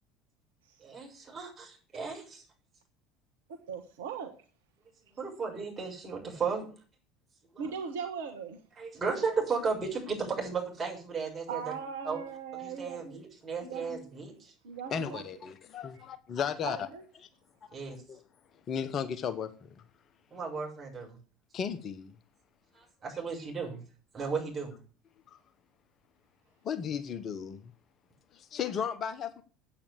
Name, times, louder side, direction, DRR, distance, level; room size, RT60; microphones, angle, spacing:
voice 1, 0.8-2.4 5.1-6.6 7.5-7.7 8.8-11.6 12.0-12.2 12.5-14.5 17.7-18.0 20.3-21.2 22.7-23.8 24.1-24.7, right 5 dB, 25° right, -1 dB, 6.6 m, -35 dB
voice 2, 3.7-4.3 7.6-8.6 11.5-13.2 13.6-14.0 14.6-15.2 16.6-17.0, right 6 dB, 70° right, 5 dB, 1.4 m, -39 dB
voice 3, 14.9-16.9 17.2-17.3 17.6-17.7 18.1-18.2 18.7-19.7 21.5-22.1 25.3-25.4 26.6-27.7 28.3-29.4, left 7 dB, 40° left, 12 dB, 1.1 m, -35 dB
8.8 x 8.6 x 8.4 m, 0.40 s
figure-of-eight pair, 65°, 0 cm